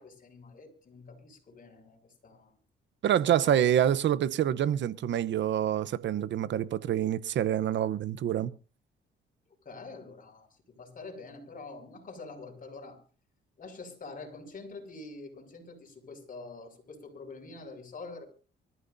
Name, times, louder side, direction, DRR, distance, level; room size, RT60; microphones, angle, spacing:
voice 1, 0.0-2.6 3.1-3.6 9.5-10.5 10.8-13.0 13.6-18.3, left 3 dB, 45° left, 6.0 m, -46 dB
voice 2, 3.0-8.5, right 10 dB, 65° right, 0.9 m, -26 dB
25.0 x 14.0 x 2.7 m
cardioid pair, 90°, 20 cm